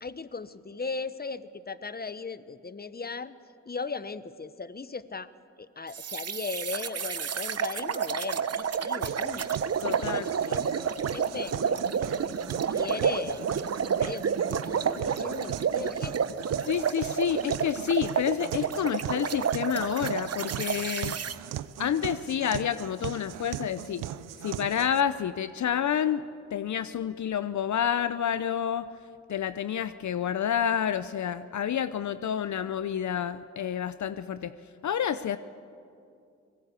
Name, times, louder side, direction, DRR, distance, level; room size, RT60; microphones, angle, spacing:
voice 1, 0.0-3.3 3.7-5.3 5.6-9.6 9.9-10.8 11.1-11.9 12.5-16.4, left 4 dB, 30° left, 14 dB, 1.1 m, -37 dB
sound 1, 5.9-21.4, right 7 dB, 50° right, 1.0 m, -30 dB
sound 2, 9.0-25.0, right 12 dB, 90° right, 0.6 m, -40 dB
voice 2, 9.8-10.3 14.0-14.1 16.6-21.2 21.8-24.1 24.4-26.2 26.5-28.9 29.3-34.6 34.8-35.4, left 9 dB, 65° left, 13 dB, 0.7 m, -29 dB
26.5 x 19.0 x 8.2 m, 2.5 s
supercardioid pair, 40°, 31 cm